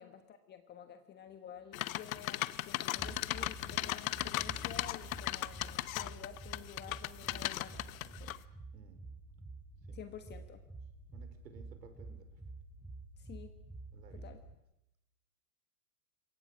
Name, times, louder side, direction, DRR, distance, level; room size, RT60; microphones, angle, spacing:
voice 1, 0.0-8.4 9.9-10.6 13.2-13.6 14.1-14.4, left 9 dB, 20° left, 8 dB, 1.3 m, -51 dB
sound 1, 1.7-8.4, left 16 dB, 60° left, 1.0 m, -37 dB
sound 2, 1.9-14.6, right 2 dB, 5° right, 1.9 m, -50 dB
voice 2, 11.1-12.3 13.9-14.3, right 7 dB, 90° right, 8 dB, 4.7 m, -56 dB
27.0 x 23.0 x 6.2 m, 0.87 s
supercardioid pair, 145°, 48 cm